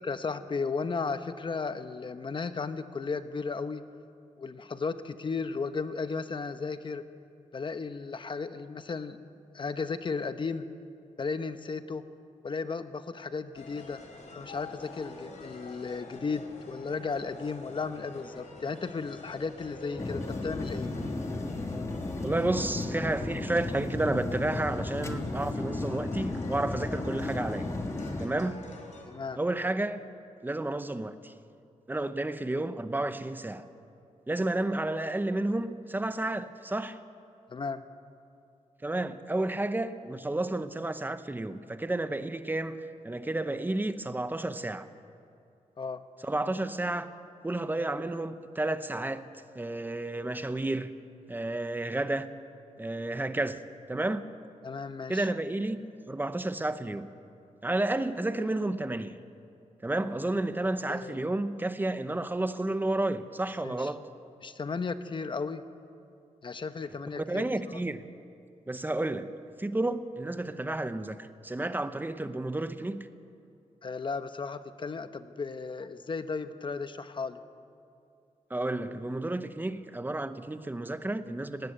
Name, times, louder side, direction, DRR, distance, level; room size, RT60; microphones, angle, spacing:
voice 1, 0.0-3.8 4.4-7.0 7.5-9.2 9.5-10.7 11.2-12.0 12.4-14.0 14.4-20.9 29.1-29.4 37.5-37.8 45.8-46.0 54.6-55.3 60.9-61.2 63.6-63.9 64.4-65.6 66.4-67.5 73.8-77.4, left 4 dB, 40° left, 11 dB, 0.9 m, -35 dB
sound 1, 13.5-29.1, left 3 dB, 75° left, 3.5 m, -47 dB
sound 2, 20.0-28.3, left 2 dB, 25° left, 1.5 m, -34 dB
voice 2, 22.2-27.7 28.2-28.6 29.3-30.1 30.4-31.3 31.9-33.6 34.3-37.0 38.8-44.9 46.2-47.1 47.4-49.2 49.5-50.9 51.3-52.3 52.8-53.6 53.9-54.2 55.1-55.8 56.1-57.1 57.6-59.2 59.8-64.0 67.2-68.0 68.7-69.3 69.6-73.1 78.5-81.7, right 2 dB, 15° right, 11 dB, 0.8 m, -31 dB
18.5 x 18.0 x 8.1 m, 2.5 s
wide cardioid pair, 115°, 13 cm